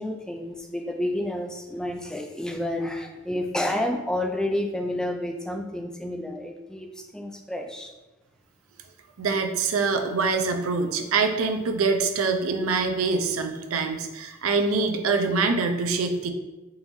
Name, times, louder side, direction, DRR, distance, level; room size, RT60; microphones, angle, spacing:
voice 1, 0.0-7.9, left 1 dB, 5° left, 3 dB, 0.4 m, -30 dB
voice 2, 9.2-16.3, right 4 dB, 85° right, 5 dB, 0.5 m, -24 dB
3.9 x 3.7 x 3.0 m, 1.1 s
head